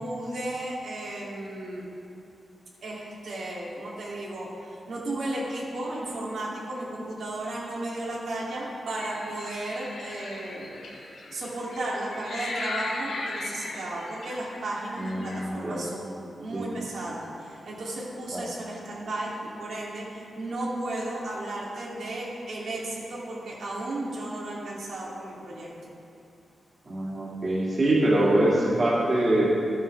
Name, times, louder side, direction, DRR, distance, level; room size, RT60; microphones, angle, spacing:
voice 1, 0.0-1.9 2.8-10.7 11.3-16.1 16.4-25.7, right 1 dB, 75° right, -6 dB, 2.7 m, -34 dB
sound 1, 8.9-15.4, left 2 dB, 80° left, 1.7 m, -38 dB
voice 2, 15.0-15.8 16.5-16.7 18.3-18.4 26.9-29.5, right 1 dB, 35° right, -6 dB, 2.3 m, -24 dB
14.5 x 9.4 x 3.5 m, 2.7 s
wide cardioid pair, 135°, 0 cm